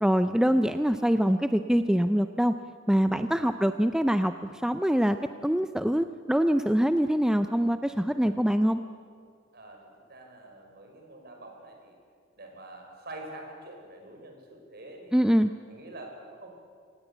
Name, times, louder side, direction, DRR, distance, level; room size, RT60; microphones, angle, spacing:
voice 1, 0.0-2.5 2.9-4.3 4.6-5.2 5.4-8.8 15.1-15.5, equal, 5° right, 9 dB, 0.5 m, -24 dB
voice 2, 3.0-3.4 9.5-9.8 10.1-12.0 12.4-15.2 15.7-16.6, right 1 dB, 55° right, 2 dB, 5.1 m, -46 dB
26.0 x 18.0 x 8.2 m, 2.1 s
head